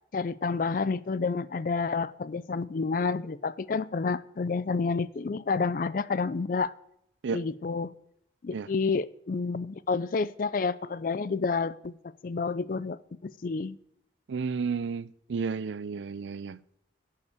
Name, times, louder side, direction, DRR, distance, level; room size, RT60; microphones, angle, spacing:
voice 1, 0.1-6.7 7.3-7.9 8.4-13.8, left 4 dB, 50° left, 0.4 m, -29 dB
voice 2, 14.3-16.6, right 5 dB, 90° right, 0.4 m, -32 dB
10.5 x 5.8 x 8.1 m
head